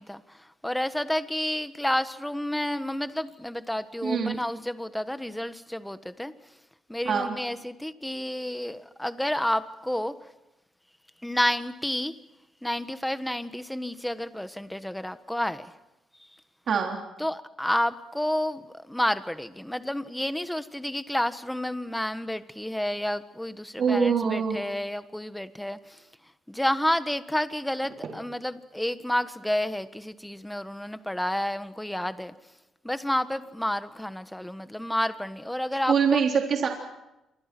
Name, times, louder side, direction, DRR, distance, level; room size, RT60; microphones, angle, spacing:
voice 1, 0.0-6.3 6.9-10.2 11.2-12.2 12.6-15.7 16.2-16.3 17.2-26.0 26.5-32.3 32.8-36.2, left 1 dB, 5° left, 11 dB, 1.4 m, -30 dB
voice 2, 4.0-4.4 7.1-7.3 16.7-17.0 23.8-24.6 35.9-36.7, right 6 dB, 55° right, 2 dB, 3.4 m, -24 dB
28.0 x 24.5 x 6.1 m, 0.95 s
cardioid pair, 90°, 0 cm